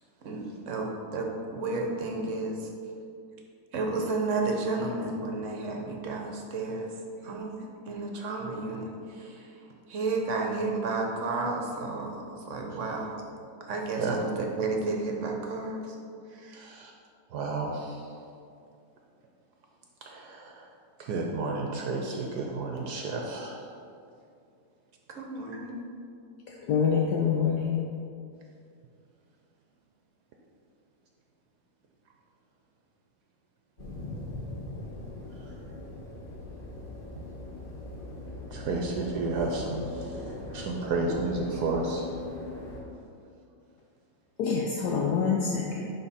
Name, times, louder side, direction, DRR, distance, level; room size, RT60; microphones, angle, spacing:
voice 1, 0.2-2.7 3.7-6.9 7.2-9.5 9.9-13.1 13.7-15.9 16.3-16.7 25.1-25.8, right 3 dB, 50° right, 1 dB, 1.0 m, -32 dB
voice 2, 16.5-16.9 17.3-18.0 20.1-20.6 21.0-23.5 38.5-40.1 40.5-42.1, right 3 dB, 70° right, 0 dB, 1.1 m, -31 dB
voice 3, 26.7-27.8 44.4-45.9, left 6 dB, 70° left, -1 dB, 1.1 m, -26 dB
sound 1, 33.8-42.8, left 2 dB, 35° left, 1.4 m, -40 dB
10.5 x 3.6 x 4.2 m, 2.5 s
omnidirectional pair, 1.9 m